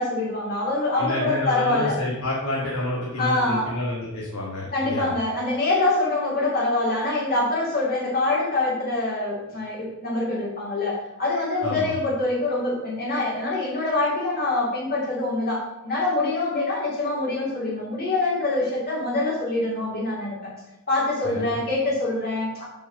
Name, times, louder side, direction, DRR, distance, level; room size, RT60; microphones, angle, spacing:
voice 1, 0.0-2.0 3.2-3.7 4.7-20.5 20.9-22.6, left 2 dB, 45° left, -5 dB, 2.6 m, -25 dB
voice 2, 1.0-5.1 11.6-11.9 21.2-21.4, left 1 dB, 70° left, -5 dB, 1.4 m, -29 dB
5.3 x 4.6 x 6.1 m, 0.96 s
head